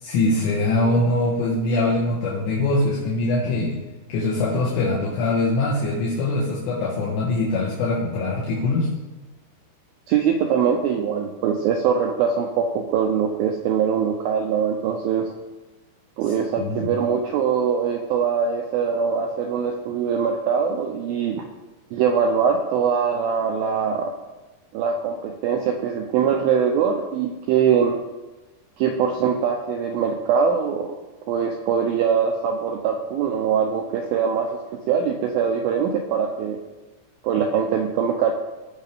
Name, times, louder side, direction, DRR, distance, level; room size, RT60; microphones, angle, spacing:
voice 1, 0.0-3.8 4.1-8.9 16.6-16.9, left 2 dB, 80° left, -6 dB, 3.9 m, -22 dB
voice 2, 10.1-15.3 16.2-21.5 21.9-24.1 24.7-27.9 28.8-31.0 31.3-36.6 37.2-38.3, right 7 dB, 85° right, 3 dB, 2.1 m, -22 dB
18.5 x 6.5 x 3.6 m, 1.1 s
omnidirectional pair, 5.0 m